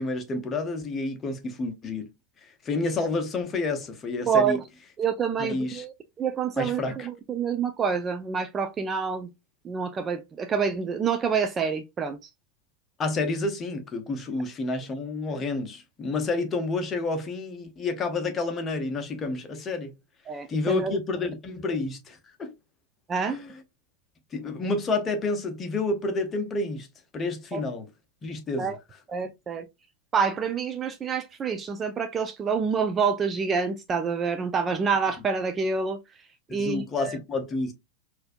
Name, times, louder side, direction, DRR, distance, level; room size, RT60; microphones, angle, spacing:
voice 1, 0.0-2.1 2.6-4.6 5.4-5.8 6.6-7.1 13.0-19.9 20.5-22.5 23.3-23.5 24.3-26.9 27.1-27.9 28.2-28.7 36.5-37.7, left 3 dB, 20° left, 0.8 m, -29 dB
voice 2, 4.3-4.6 5.0-9.3 9.6-12.3 20.3-21.0 21.6-21.8 23.1-23.4 27.5-27.6 28.6-28.8 29.1-29.7 30.1-36.0 36.5-37.2, right 6 dB, 20° right, 0.3 m, -27 dB
4.2 x 2.6 x 2.4 m
figure-of-eight pair, 90°, 0 cm